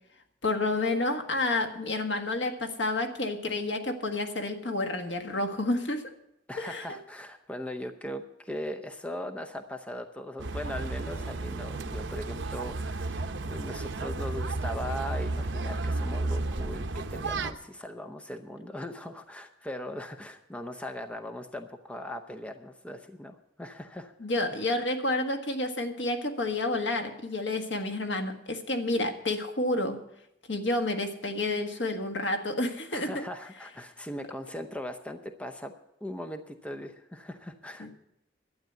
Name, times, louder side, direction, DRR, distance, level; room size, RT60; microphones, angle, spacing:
voice 1, 0.4-6.1 6.6-6.9 24.2-30.0 30.5-33.3 37.8-37.9, left 2 dB, 75° left, 4 dB, 1.6 m, -30 dB
voice 2, 6.5-24.1 32.9-35.7 36.0-37.9, left 1 dB, 5° left, 5 dB, 0.7 m, -39 dB
sound 1, 10.4-17.5, right 2 dB, 75° right, 0.8 m, -33 dB
12.0 x 8.8 x 8.0 m, 0.80 s
head